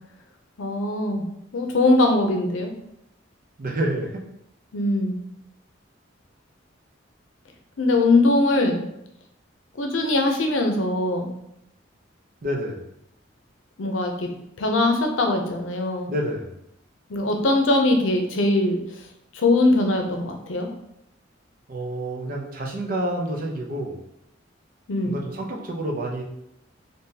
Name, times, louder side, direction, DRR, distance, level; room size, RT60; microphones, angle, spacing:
voice 1, 0.6-1.3 1.5-2.7 4.7-5.2 7.8-8.8 9.8-11.3 13.8-14.3 14.6-16.1 17.1-18.8 19.3-20.7 24.9-25.2, left 2 dB, 85° left, 3 dB, 0.6 m, -21 dB
voice 2, 3.6-4.2 12.4-12.8 16.1-16.5 21.7-24.0 25.0-26.2, right 1 dB, 50° right, 0 dB, 0.7 m, -28 dB
3.8 x 2.6 x 2.7 m, 0.77 s
head